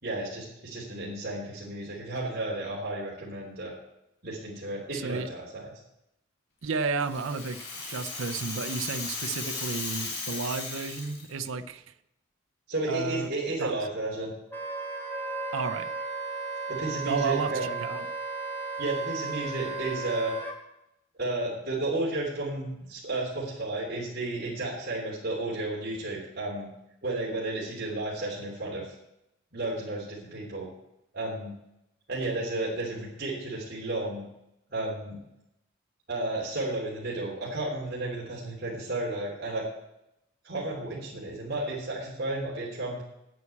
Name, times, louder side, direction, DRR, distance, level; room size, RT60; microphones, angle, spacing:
voice 1, 0.0-3.7 4.2-5.7 12.7-14.3 16.7-17.8 18.8-20.3 21.2-26.7 27.0-28.9 29.5-30.7 31.1-31.5 32.1-34.2 34.7-35.2 36.1-39.6 40.4-43.0, right 2 dB, 45° right, -6 dB, 3.1 m, -32 dB
voice 2, 4.9-5.3 6.6-11.9 12.9-13.3 13.6-13.7 15.5-15.9 17.0-18.1, right 4 dB, 65° right, 10 dB, 0.6 m, -32 dB
Rattle (instrument), 6.7-11.5, left 3 dB, 50° left, 3.3 m, -36 dB
Wind instrument woodwind instrument, 14.5-20.5, right 4 dB, 10° left, 1.6 m, -35 dB
9.2 x 8.4 x 8.4 m, 0.85 s
head